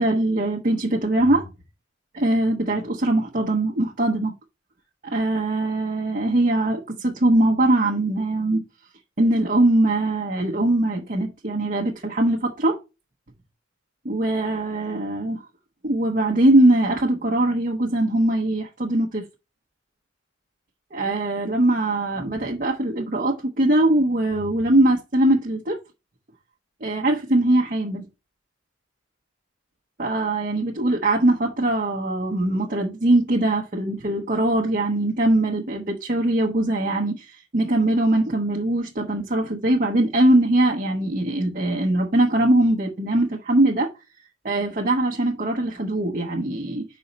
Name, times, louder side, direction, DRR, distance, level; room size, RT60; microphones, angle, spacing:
voice 1, 0.0-1.5 2.1-4.3 5.0-8.6 9.2-12.8 14.0-15.4 15.8-19.2 20.9-25.8 26.8-28.1 30.0-43.9 44.4-46.8, right 1 dB, 45° right, 1.0 m, -21 dB
5.4 x 4.2 x 5.2 m
head